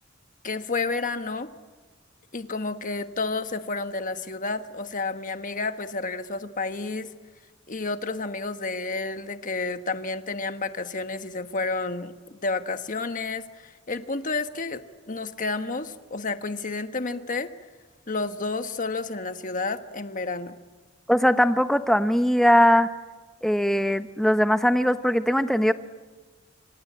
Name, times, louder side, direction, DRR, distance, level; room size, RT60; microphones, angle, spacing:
voice 1, 0.4-1.5 2.3-7.1 7.7-17.5 18.1-20.6, left 3 dB, 40° left, 9 dB, 1.3 m, -30 dB
voice 2, 21.1-22.9 23.4-25.7, equal, ahead, 9 dB, 1.0 m, -20 dB
26.0 x 25.5 x 8.6 m, 1.3 s
head